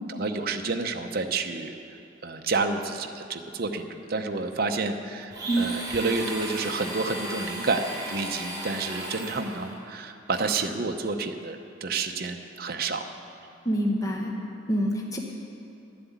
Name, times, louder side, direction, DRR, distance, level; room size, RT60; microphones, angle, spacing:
voice 1, 0.1-1.7 2.2-13.1 13.4-13.5, right 3 dB, 50° right, 5 dB, 0.7 m, -29 dB
Domestic sounds home sounds, 5.3-9.7, right 1 dB, 20° right, 3.8 m, -35 dB
voice 2, 5.5-5.8 13.6-14.3 14.7-15.2, right 1 dB, 20° left, 0 dB, 1.1 m, -26 dB
11.5 x 7.7 x 9.2 m, 2.6 s
head